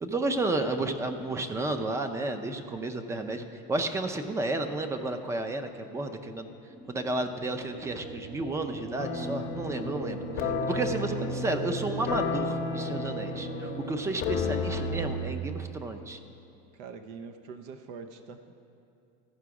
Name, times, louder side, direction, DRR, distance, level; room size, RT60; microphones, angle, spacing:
voice 1, 0.0-6.5 6.9-10.2 10.7-16.2, right 2 dB, 15° right, 8 dB, 0.4 m, -32 dB
sound 1, 6.7-14.0, right 2 dB, 65° right, 1.9 m, -40 dB
sound 2, 9.0-15.3, left 3 dB, 50° left, 0.7 m, -33 dB
voice 2, 16.7-18.5, right 5 dB, 80° right, 8 dB, 0.6 m, -44 dB
14.0 x 5.0 x 4.8 m, 2.5 s
supercardioid pair, 140°, 21 cm